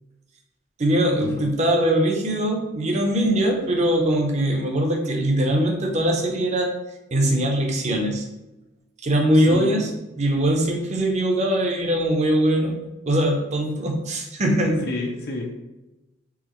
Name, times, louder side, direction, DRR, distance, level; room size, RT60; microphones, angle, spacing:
voice 1, 0.8-6.7 7.1-8.2 9.0-9.9 10.2-12.8 13.1-14.8, right 1 dB, 30° right, 2 dB, 0.7 m, -21 dB
voice 2, 9.3-9.8 14.8-15.6, left 2 dB, 50° left, 0 dB, 0.5 m, -30 dB
4.8 x 3.6 x 3.0 m, 1.0 s
head